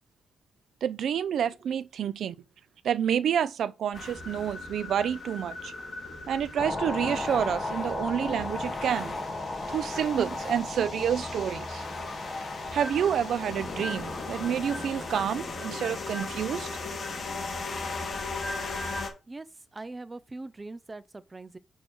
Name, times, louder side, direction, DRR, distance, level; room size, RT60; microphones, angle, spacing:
voice 1, 0.8-2.4 2.8-5.7 6.3-9.2 9.7-11.8 12.7-16.7, right 9 dB, 70° right, 0.5 m, -29 dB
sound 1, 3.9-19.1, left 3 dB, 40° left, 2.8 m, -38 dB
sound 2, 6.6-15.3, left 2 dB, 20° left, 2.9 m, -36 dB
voice 2, 19.7-21.6, right 2 dB, 20° right, 0.5 m, -41 dB
6.3 x 4.7 x 6.2 m
wide cardioid pair, 160°, 0 cm